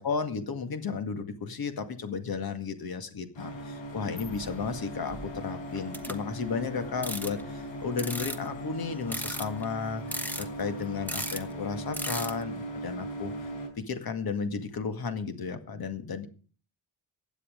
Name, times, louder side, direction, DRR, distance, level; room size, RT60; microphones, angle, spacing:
voice 1, 0.0-13.3 13.8-16.3, left 5 dB, 55° left, 8 dB, 2.0 m, -34 dB
sound 1, 3.3-13.7, right 1 dB, 85° left, 4.7 m, -39 dB
sound 2, 4.2-4.8 5.1-5.4 5.7-6.5 7.0-7.4 7.9-8.7 9.1-9.6 10.1-10.8 11.1-11.4 11.9-12.4, equal, 5° left, 1.2 m, -36 dB
16.0 x 10.0 x 5.2 m, 0.38 s
wide cardioid pair, 180°, 44 cm